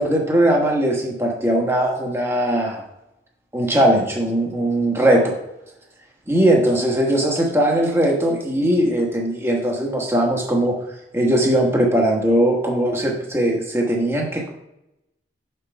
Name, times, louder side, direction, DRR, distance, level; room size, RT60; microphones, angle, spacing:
voice 1, 0.0-2.8 3.5-5.4 6.3-10.8 11.1-14.5, right 1 dB, 15° right, 0 dB, 1.2 m, -19 dB
6.9 x 4.7 x 5.1 m, 0.87 s
head